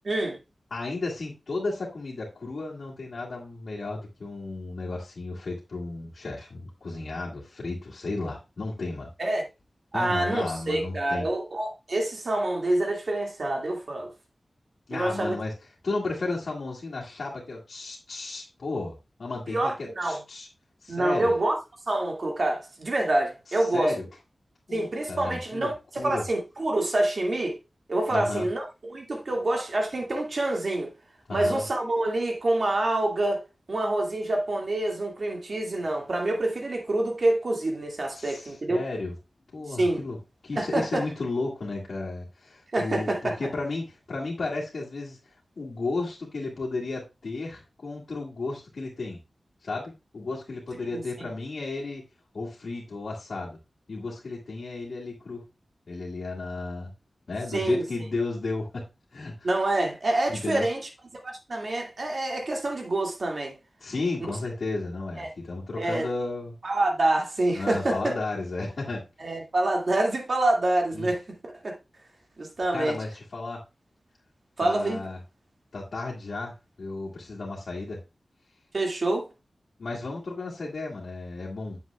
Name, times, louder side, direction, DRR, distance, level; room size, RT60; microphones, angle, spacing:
voice 1, 0.0-0.4 9.2-9.4 9.9-14.1 14.9-15.4 19.5-20.2 20.9-21.6 21.9-23.9 24.7-27.6 27.9-30.9 31.3-33.4 33.7-38.8 39.8-40.0 40.6-41.0 42.7-43.3 50.8-51.3 57.5-57.8 59.4-60.8 61.2-63.5 65.2-65.3 65.8-66.1 66.6-68.1 69.2-71.2 71.6-71.8 72.4-73.0 74.6-75.0 78.7-79.3, right 2 dB, 60° right, 2.1 m, -26 dB
voice 2, 0.7-9.1 9.9-11.3 14.9-15.5 15.8-20.5 20.8-21.3 23.7-24.0 24.7-25.7 26.0-26.2 28.1-28.4 31.3-31.6 38.1-39.2 39.5-40.2 40.4-45.2 45.6-49.2 49.6-52.0 52.3-53.6 53.9-55.4 55.9-56.9 57.3-58.8 59.1-59.5 60.3-60.7 63.8-66.5 67.5-69.0 70.9-71.1 72.7-73.6 74.6-75.2 75.7-76.5 76.8-78.0 79.8-81.8, left 3 dB, 75° left, 2.0 m, -33 dB
8.7 x 7.0 x 2.3 m
wide cardioid pair, 90°, 0 cm